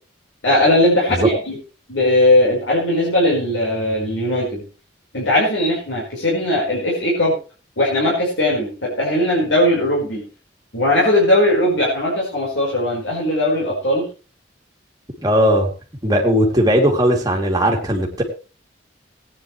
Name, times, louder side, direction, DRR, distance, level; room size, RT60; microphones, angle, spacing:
voice 1, 0.4-1.6 1.9-4.6 5.1-7.3 7.8-10.2 10.7-14.1, left 1 dB, 75° left, -4 dB, 4.8 m, -18 dB
voice 2, 15.2-15.7 16.0-18.2, equal, 20° right, 0 dB, 2.9 m, -17 dB
19.0 x 9.8 x 3.3 m, 0.34 s
head